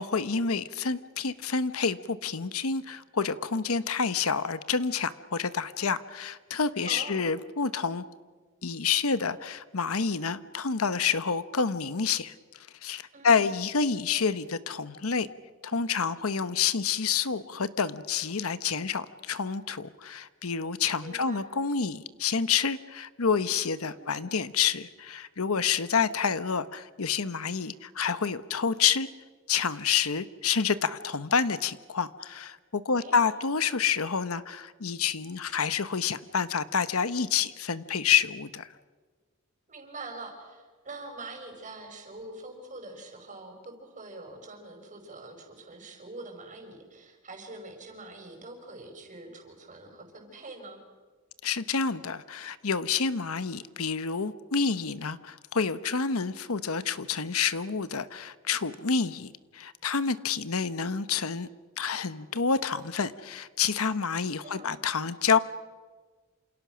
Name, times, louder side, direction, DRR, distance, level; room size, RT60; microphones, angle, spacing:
voice 1, 0.0-8.0 8.6-12.3 12.8-15.3 15.6-29.1 29.5-38.7 51.4-61.5 61.8-65.4, left 6 dB, 85° left, 14 dB, 1.0 m, -28 dB
voice 2, 6.9-7.3 13.1-13.5 21.0-21.5 23.9-24.4 33.0-33.4 39.7-50.8 64.4-64.9, right 2 dB, 35° right, 3 dB, 5.6 m, -44 dB
28.0 x 27.5 x 6.3 m, 1.4 s
head